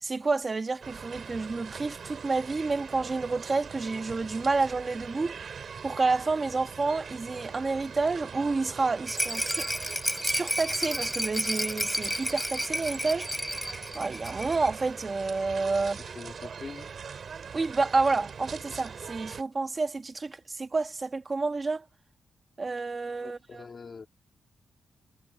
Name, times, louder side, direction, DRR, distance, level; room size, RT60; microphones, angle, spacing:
voice 1, 0.0-5.3 5.8-9.7 10.2-13.3 13.9-16.0 17.5-21.8 22.6-23.6, right 3 dB, 25° right, 1.4 m, -29 dB
russian supermarket (auchan) near registers, 0.8-19.4, right 6 dB, 50° right, 6.3 m, -42 dB
Rattle, 9.1-14.8 15.0-15.1 15.4-15.5, equal, ahead, 2.8 m, -31 dB
voice 2, 15.7-16.9 23.2-24.1, left 5 dB, 35° left, 2.6 m, -44 dB
wide cardioid pair, 165°, 0 cm